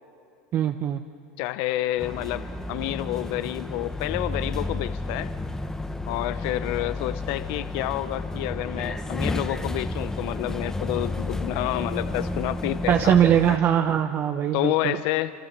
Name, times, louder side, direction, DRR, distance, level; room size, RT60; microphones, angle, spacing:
voice 1, 0.5-1.0 12.9-15.0, right 10 dB, 35° right, 7 dB, 0.9 m, -21 dB
voice 2, 1.4-5.3 6.0-13.2 13.5-13.6 14.5-15.3, left 16 dB, 60° left, 13 dB, 0.7 m, -29 dB
sound 1, 2.0-13.6, left 2 dB, 10° left, 1.1 m, -31 dB
28.0 x 26.5 x 7.4 m, 2.5 s
supercardioid pair, 125°, 6 cm